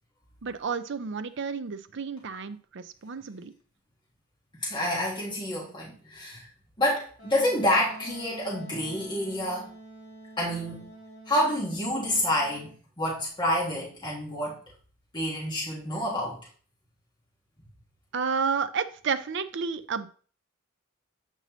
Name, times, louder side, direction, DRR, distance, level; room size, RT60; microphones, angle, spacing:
voice 1, 0.4-3.5 18.1-20.1, right 5 dB, 55° right, 11 dB, 0.5 m, -31 dB
voice 2, 4.5-6.5 6.8-9.7 10.4-10.8 11.2-14.6 15.1-16.4, left 1 dB, 20° left, -5 dB, 1.6 m, -28 dB
Wind instrument woodwind instrument, 7.2-12.7, right 1 dB, 40° left, 3.6 m, -47 dB
8.2 x 5.4 x 3.1 m, 0.43 s
head